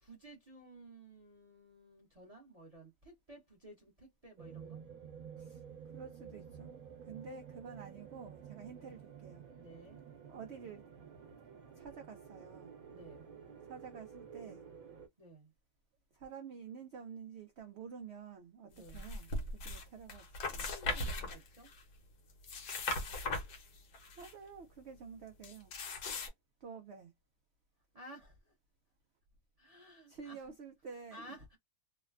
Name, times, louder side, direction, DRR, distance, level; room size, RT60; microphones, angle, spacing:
voice 1, 0.0-4.8 8.7-9.0 9.5-10.0 12.9-13.3 15.2-15.5 18.7-19.0 20.6-21.7 27.9-28.5 29.6-30.4 31.1-31.6, right 1 dB, 30° right, 0.7 m, -55 dB
sound 1, 4.4-15.1, right 7 dB, 60° right, 1.2 m, -51 dB
voice 2, 5.9-9.5 10.3-10.8 11.8-12.8 13.6-14.7 16.1-20.7 24.2-25.7 26.6-27.1 30.1-31.3, right 6 dB, 85° right, 0.5 m, -50 dB
sound 2, 18.8-19.8 20.1-21.8 22.3-24.3 25.4-26.3, left 2 dB, 70° left, 1.3 m, -39 dB
3.2 x 2.1 x 2.3 m
omnidirectional pair, 1.8 m